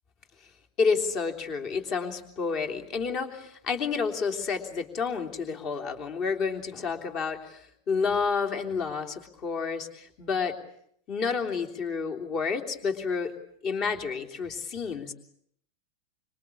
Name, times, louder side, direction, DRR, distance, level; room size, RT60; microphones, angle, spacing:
voice 1, 0.8-10.5 11.1-13.3 13.6-15.1, left 5 dB, 35° left, 3 dB, 3.3 m, -30 dB
26.0 x 24.5 x 8.4 m, 0.69 s
figure-of-eight pair, 90°, 0 cm